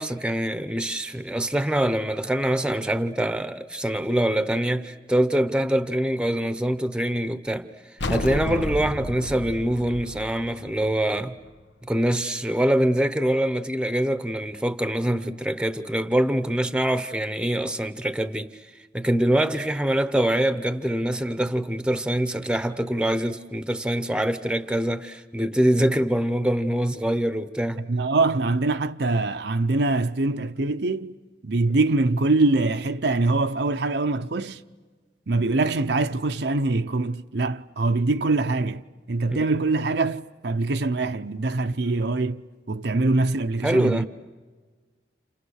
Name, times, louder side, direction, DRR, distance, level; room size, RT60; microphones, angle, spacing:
voice 1, 0.0-7.7 8.1-11.4 11.8-18.5 18.9-27.9 43.6-44.1, right 1 dB, 5° right, 0.8 m, -24 dB
sound 1, 8.0-11.4, left 1 dB, 85° left, 1.2 m, -31 dB
voice 2, 27.9-31.1 31.4-34.6 35.3-44.1, right 2 dB, 65° right, 0.7 m, -24 dB
30.0 x 29.5 x 6.5 m
head